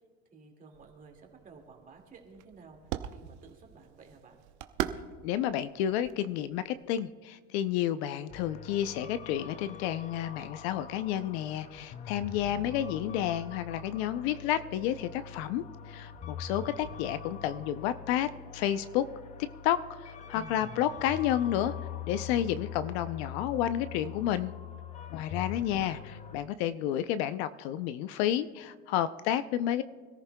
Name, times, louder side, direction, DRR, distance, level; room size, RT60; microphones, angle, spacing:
voice 1, 0.3-2.8 3.1-4.4 25.4-26.0, right 5 dB, 25° right, 2 dB, 2.1 m, -54 dB
sound 1, 0.7-7.0, right 11 dB, 55° right, 0.8 m, -42 dB
voice 2, 5.2-19.1 19.6-21.7 22.1-24.5 25.1-26.0 26.3-29.8, left 11 dB, 65° left, 13 dB, 0.6 m, -31 dB
sound 2, 8.3-26.4, left 8 dB, 20° left, 0.5 m, -43 dB
25.5 x 14.0 x 2.2 m, 1.6 s
cardioid pair, 155°, 34 cm